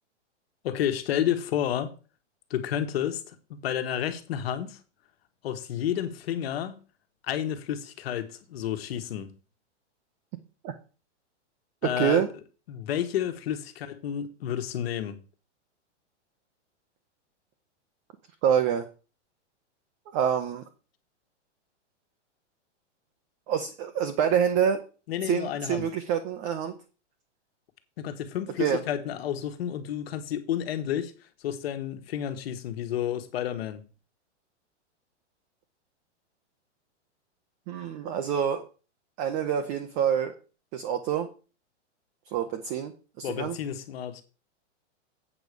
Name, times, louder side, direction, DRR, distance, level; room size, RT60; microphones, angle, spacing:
voice 1, 0.6-1.9 2.5-4.8 5.4-6.8 7.2-9.3 11.8-12.2 12.7-15.2 25.1-25.9 28.0-33.9 43.2-44.2, left 10 dB, 55° left, 1.5 m, -31 dB
voice 2, 11.8-12.3 18.4-18.8 20.1-20.6 23.5-24.8 25.2-26.7 28.6-28.8 37.7-38.6 39.2-40.3 40.7-41.3 42.3-42.9 43.2-43.5, right 8 dB, 20° right, 0.6 m, -26 dB
8.3 x 4.8 x 6.7 m
hypercardioid pair, 155°, 36 cm